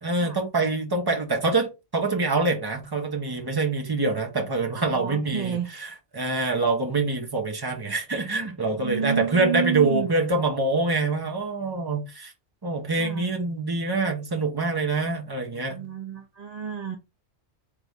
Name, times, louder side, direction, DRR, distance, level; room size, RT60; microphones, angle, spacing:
voice 1, 0.0-5.6 6.1-12.3 12.6-15.9, right 3 dB, 20° right, 0.8 m, -25 dB
voice 2, 4.7-5.7 8.8-10.1 13.0-13.3 15.7-17.0, right 7 dB, 50° right, 0.4 m, -30 dB
3.8 x 3.4 x 3.5 m
omnidirectional pair, 1.4 m